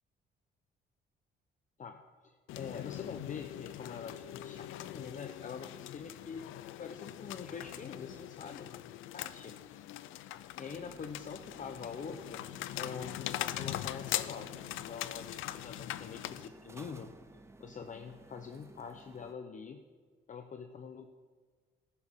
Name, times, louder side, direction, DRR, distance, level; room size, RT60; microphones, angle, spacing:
voice 1, 1.8-6.5 6.8-9.9 10.6-12.4 12.7-17.1 17.6-19.8 20.3-21.1, left 6 dB, 40° left, 6 dB, 0.8 m, -45 dB
sound 1, 2.5-16.5, left 13 dB, 85° left, 0.5 m, -41 dB
sound 2, 10.7-19.3, right 2 dB, 15° right, 0.7 m, -57 dB
13.5 x 11.5 x 3.7 m, 1.5 s
cardioid pair, 90°, 20 cm